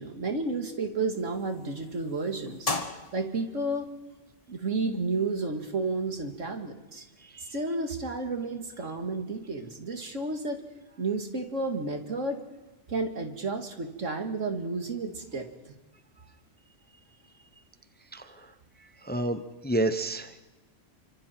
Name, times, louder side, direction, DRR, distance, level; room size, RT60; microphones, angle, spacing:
voice 1, 0.0-2.7 3.1-3.9 4.5-7.0 7.5-10.6 11.0-12.4 12.9-15.7, right 3 dB, 80° right, 5 dB, 2.5 m, -31 dB
sound 1, 1.1-6.6, left 2 dB, 30° left, 1.6 m, -40 dB
voice 2, 19.0-20.4, right 1 dB, 10° left, 9 dB, 0.8 m, -29 dB
28.0 x 25.0 x 4.5 m, 1.1 s
omnidirectional pair, 1.3 m